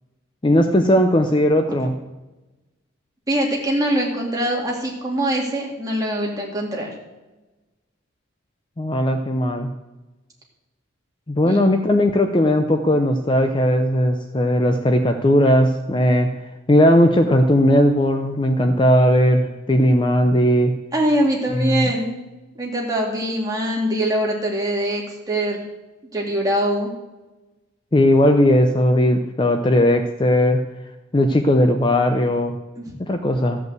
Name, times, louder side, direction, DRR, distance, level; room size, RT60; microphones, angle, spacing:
voice 1, 0.4-1.9 8.8-9.7 11.3-16.3 16.7-20.7 21.5-21.9 27.9-30.6 31.1-32.6 33.0-33.6, left 1 dB, 25° left, 6 dB, 0.5 m, -17 dB
voice 2, 3.3-6.9 11.4-11.6 20.9-22.2 22.6-25.6 26.1-26.9 32.8-32.9, right 1 dB, 15° right, -2 dB, 2.3 m, -23 dB
14.0 x 5.3 x 8.0 m, 1.1 s
head